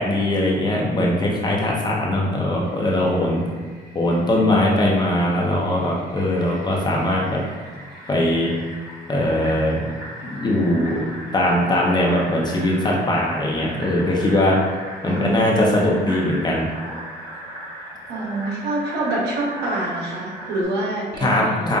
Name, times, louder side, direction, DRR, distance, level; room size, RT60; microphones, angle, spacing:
voice 1, 0.0-3.4 3.9-7.4 8.1-8.5 9.1-9.8 10.2-11.0 11.3-14.6 15.0-16.6 21.2-21.8, left 1 dB, 25° left, -3 dB, 0.7 m, -20 dB
Fill (with liquid), 2.6-20.6, equal, 20° right, 1.3 m, -38 dB
voice 2, 15.0-16.1 18.1-21.6, right 2 dB, 75° right, -4 dB, 1.1 m, -26 dB
5.3 x 2.5 x 2.4 m, 1.6 s
cardioid pair, 110°, 17 cm